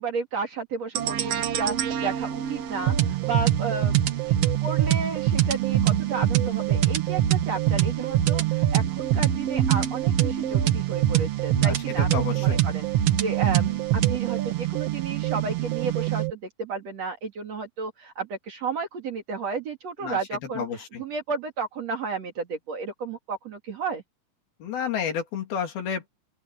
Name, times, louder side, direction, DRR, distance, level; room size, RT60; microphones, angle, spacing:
voice 1, 0.0-4.4 4.6-12.9 13.2-20.6 21.0-24.0, right 4 dB, 45° right, 3.1 m, -32 dB
sound 1, 0.9-16.3, right 12 dB, 65° right, 1.6 m, -24 dB
voice 2, 11.5-12.6 20.0-20.2 20.5-21.0 24.6-26.1, left 7 dB, 75° left, 4.9 m, -31 dB
open air
omnidirectional pair, 4.4 m